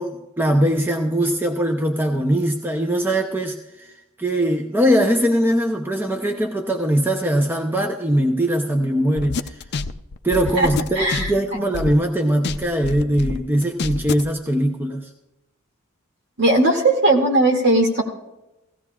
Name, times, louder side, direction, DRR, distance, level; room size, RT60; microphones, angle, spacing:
voice 1, 0.0-3.9 4.2-9.6 10.2-15.1, right 1 dB, 10° right, 3 dB, 0.7 m, -21 dB
sound 1, 9.2-12.1 12.4-14.3, left 4 dB, 50° left, 0.5 m, -27 dB
voice 2, 11.0-11.3 16.4-18.0, right 2 dB, 55° right, 1 dB, 2.4 m, -17 dB
17.5 x 15.5 x 2.4 m, 0.97 s
head